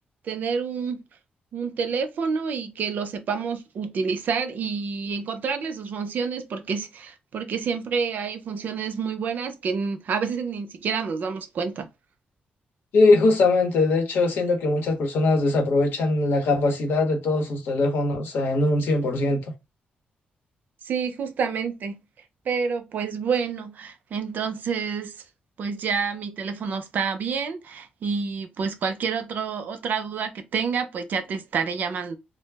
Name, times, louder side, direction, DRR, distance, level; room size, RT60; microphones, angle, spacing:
voice 1, 0.2-1.0 1.5-11.9 20.8-22.0 22.5-25.1 25.6-32.2, right 5 dB, 60° right, 0.4 m, -28 dB
voice 2, 12.9-19.4, left 2 dB, 85° left, 0.9 m, -21 dB
2.2 x 2.0 x 3.3 m
cardioid pair, 130°, 3 cm